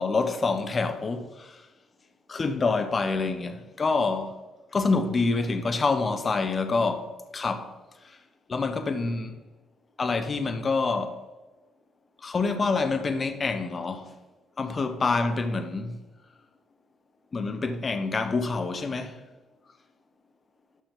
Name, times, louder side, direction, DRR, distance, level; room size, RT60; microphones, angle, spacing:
voice 1, 0.0-1.6 2.3-4.4 4.7-7.7 8.0-8.2 8.5-9.4 10.0-11.2 12.2-14.1 14.6-16.0 17.3-19.2, left 4 dB, 40° left, 1.1 m, -27 dB
12.0 x 6.2 x 3.9 m
hypercardioid pair, 50°, 0 cm